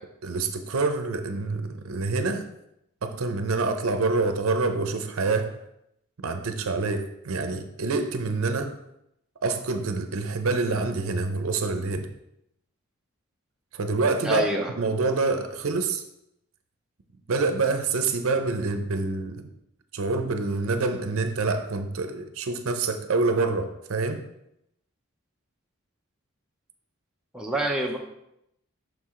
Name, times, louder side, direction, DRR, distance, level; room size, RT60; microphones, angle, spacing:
voice 1, 0.2-2.5 3.0-5.6 6.2-8.7 9.4-12.1 13.7-14.4 14.8-16.0 17.3-19.5 19.9-24.2, right 3 dB, 75° right, 7 dB, 0.6 m, -26 dB
voice 2, 14.2-14.7 27.3-28.0, right 1 dB, 5° right, -1 dB, 0.6 m, -26 dB
6.1 x 4.7 x 3.7 m, 0.80 s
head